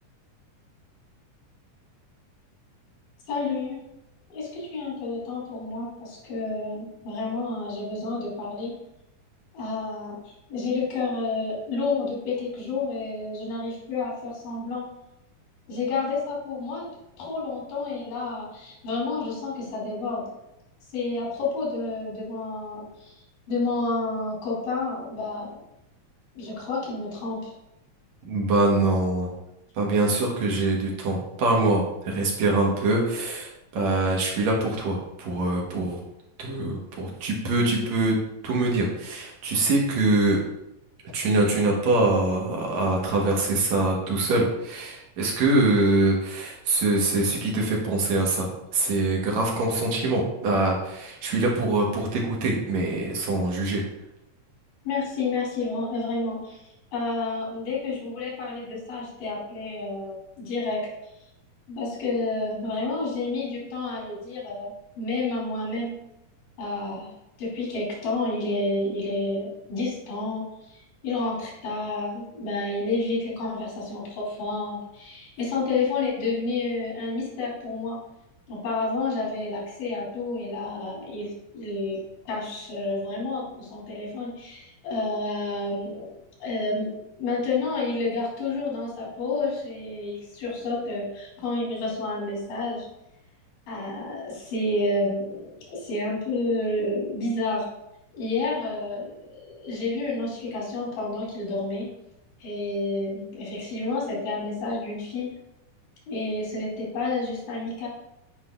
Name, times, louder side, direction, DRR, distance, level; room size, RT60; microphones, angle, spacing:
voice 1, 3.3-3.8 4.3-8.7 9.5-14.9 15.7-16.9 17.2-20.3 20.9-23.2 23.5-25.6 26.3-27.5 54.9-56.6 56.9-60.8 61.7-65.9 66.6-67.1 67.4-78.0 78.5-86.1 86.4-92.9 93.7-97.7 98.2-101.9 102.4-105.3 106.1-107.9, left 3 dB, 85° left, -4 dB, 3.7 m, -30 dB
voice 2, 28.3-29.3 29.8-36.0 36.4-38.2 38.4-40.4 41.1-53.8, right 2 dB, 65° right, -1 dB, 2.2 m, -24 dB
9.5 x 4.8 x 2.3 m, 0.86 s
omnidirectional pair, 3.7 m